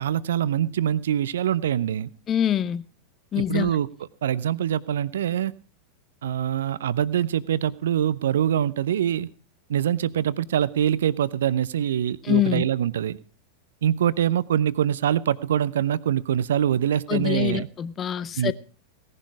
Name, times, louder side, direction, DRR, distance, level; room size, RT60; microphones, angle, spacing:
voice 1, 0.0-2.1 3.4-3.9 4.2-5.5 6.2-9.3 9.7-13.2 13.8-17.7 18.4-18.5, right 10 dB, 60° right, 0.6 m, -24 dB
voice 2, 2.3-2.8 3.3-3.7 12.2-12.7 17.1-18.5, left 10 dB, 25° left, 0.7 m, -24 dB
17.5 x 11.0 x 4.8 m
figure-of-eight pair, 90°, 0 cm